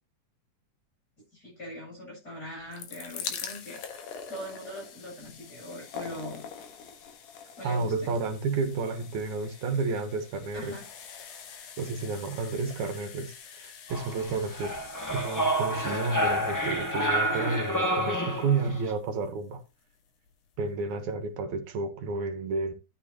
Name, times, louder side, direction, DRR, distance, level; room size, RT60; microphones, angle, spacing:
voice 1, 1.3-6.4 7.6-8.1 10.5-10.9, left 1 dB, 30° left, 8.7 m, -41 dB
sound 1, 2.5-19.5 20.3-20.4 20.6-20.7, left 7 dB, 70° left, 2.9 m, -45 dB
voice 2, 7.6-10.8 11.8-14.7 15.1-19.6 20.6-22.7, right 4 dB, 70° right, 2.5 m, -31 dB
sound 2, 13.9-18.9, equal, 10° left, 0.8 m, -29 dB
12.0 x 9.5 x 2.9 m
omnidirectional pair, 3.7 m